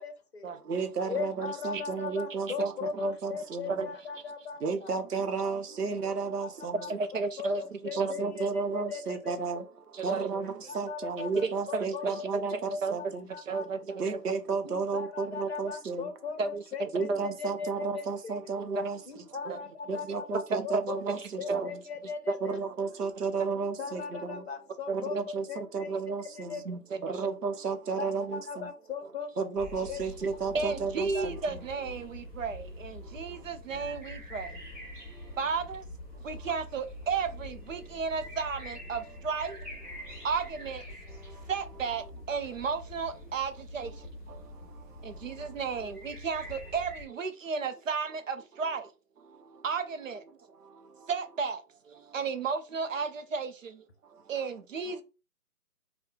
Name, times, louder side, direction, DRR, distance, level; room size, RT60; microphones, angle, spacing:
voice 1, 0.0-0.6 1.0-5.0 5.7-5.8 6.6-6.9 7.4-9.4 10.6-12.2 12.5-12.9 13.3-13.7 13.9-14.0 14.6-18.5 19.1-22.6 23.8-25.2 25.5-26.6 28.0-29.5 29.9-30.0 30.7-30.8 31.1-31.3, left 5 dB, 45° left, 0.9 m, -39 dB
voice 2, 0.7-3.8 4.6-6.9 8.0-9.6 10.0-13.3 14.0-16.1 16.9-19.0 19.9-21.8 22.4-24.4 24.9-26.6 27.0-28.7 29.4-31.4, right 5 dB, 80° right, 0.9 m, -33 dB
voice 3, 6.8-8.3 9.9-10.4 11.3-14.2 16.4-17.2 18.7-18.9 19.4-19.6 20.5-21.7 23.4-23.5 24.9-25.2 25.9-26.0 26.6-27.2 30.5-34.5 35.4-35.9 36.2-39.6 40.2-40.8 41.3-44.1 45.0-48.9 49.6-50.2 51.1-53.9 54.3-55.0, right 5 dB, 55° right, 0.6 m, -33 dB
sound 1, 29.6-47.0, left 1 dB, 10° right, 0.9 m, -45 dB
2.9 x 2.3 x 3.6 m
hypercardioid pair, 170°, 46 cm